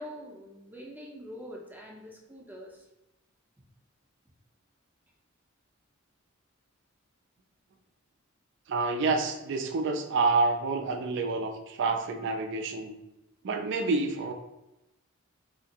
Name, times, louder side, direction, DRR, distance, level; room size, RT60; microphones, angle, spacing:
voice 1, 0.0-2.9, equal, 10° right, -1 dB, 0.6 m, -44 dB
voice 2, 8.7-13.0 13.4-14.3, right 3 dB, 60° right, 5 dB, 0.4 m, -28 dB
3.4 x 2.8 x 2.8 m, 0.93 s
head